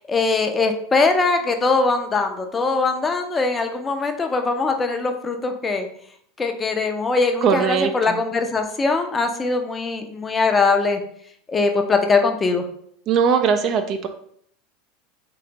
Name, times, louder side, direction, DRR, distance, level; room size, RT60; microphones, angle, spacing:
voice 1, 0.1-5.9 6.4-11.0 11.5-12.7, left 3 dB, 20° left, 5 dB, 0.5 m, -21 dB
voice 2, 7.4-7.9 13.1-14.1, right 6 dB, 40° right, 7 dB, 0.4 m, -19 dB
3.7 x 3.3 x 2.9 m, 0.66 s
figure-of-eight pair, 80°, 0 cm